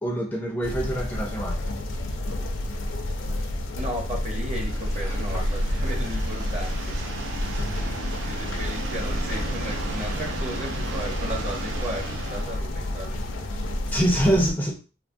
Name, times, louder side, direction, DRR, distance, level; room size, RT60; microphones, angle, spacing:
voice 1, 0.0-1.6 5.0-5.3 13.9-14.8, right 1 dB, 10° left, 0.4 m, -25 dB
sound 1, 0.6-14.5, left 1 dB, 80° left, 0.4 m, -29 dB
voice 2, 3.8-7.0 8.0-13.2, equal, 40° right, 0.9 m, -35 dB
sound 2, 4.5-12.6, right 4 dB, 80° right, 0.5 m, -36 dB
2.9 x 2.2 x 2.5 m
head